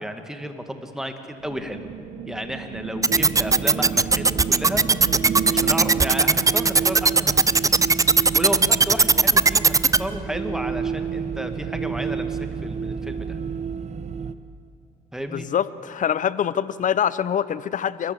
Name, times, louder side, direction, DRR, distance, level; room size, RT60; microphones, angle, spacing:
voice 1, 0.0-1.9 2.3-7.6 8.3-13.4 15.1-15.5, equal, 5° right, 6 dB, 2.1 m, -32 dB
sound 1, 1.4-6.4, right 7 dB, 65° right, 2.5 m, -34 dB
sound 2, 3.0-10.0, right 4 dB, 20° right, 0.6 m, -16 dB
sound 3, 3.1-14.3, right 6 dB, 45° right, 1.1 m, -30 dB
voice 2, 15.3-18.1, left 9 dB, 50° left, 17 dB, 0.8 m, -24 dB
29.5 x 12.5 x 7.7 m, 2.6 s
supercardioid pair, 65°, 17 cm